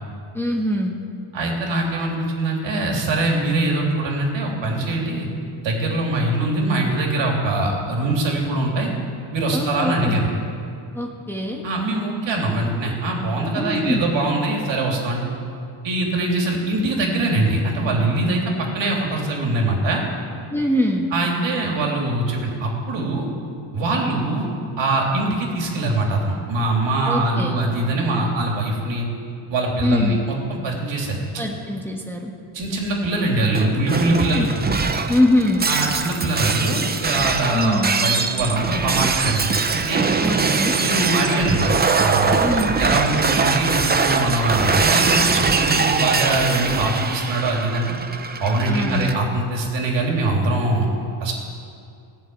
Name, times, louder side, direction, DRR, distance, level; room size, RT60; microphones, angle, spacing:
voice 1, 0.3-1.0 9.5-10.2 10.9-11.7 13.5-14.0 20.5-21.1 27.1-27.6 29.8-30.2 31.4-32.3 34.4-34.5 35.1-35.7 37.5-38.1 40.2-40.8 42.4-42.8 48.7-49.1, left 1 dB, 5° left, 0 dB, 1.3 m, -23 dB
voice 2, 1.3-5.3 5.6-8.9 9.3-10.3 11.6-15.3 15.8-20.0 21.1-23.3 23.7-24.5 24.8-29.1 29.5-31.2 32.5-34.5 35.7-40.1 40.8-42.3 42.8-47.9 48.4-50.9 51.2-51.3, right 2 dB, 60° right, -1 dB, 3.3 m, -22 dB
Shatter, 33.5-49.1, right 4 dB, 20° right, 0.7 m, -22 dB
16.0 x 7.3 x 9.4 m, 2.4 s
cardioid pair, 115°, 50 cm